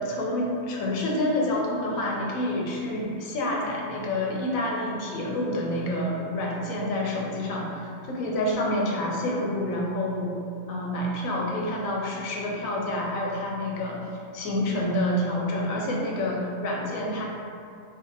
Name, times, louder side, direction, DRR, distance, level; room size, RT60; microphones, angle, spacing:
voice 1, 0.0-10.3 10.7-14.1 14.3-17.3, left 1 dB, 90° left, -2 dB, 1.0 m, -28 dB
2.7 x 2.4 x 3.8 m, 2.4 s
omnidirectional pair, 1.4 m